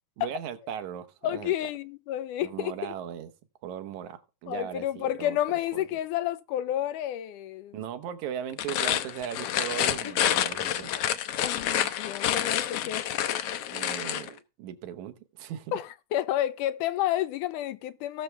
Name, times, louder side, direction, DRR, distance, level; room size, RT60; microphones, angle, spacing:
voice 1, 0.2-1.5 2.4-3.3 3.6-5.4 5.7-6.0 7.7-10.9 12.7-12.8 13.7-15.7, right 9 dB, 75° right, 2.3 m, -38 dB
voice 2, 1.2-2.9 4.5-7.8 11.4-13.0 15.7-18.2, left 12 dB, 85° left, 2.3 m, -30 dB
sound 1, 8.5-14.3, left 11 dB, 70° left, 1.4 m, -28 dB
19.0 x 6.8 x 3.3 m
omnidirectional pair, 3.6 m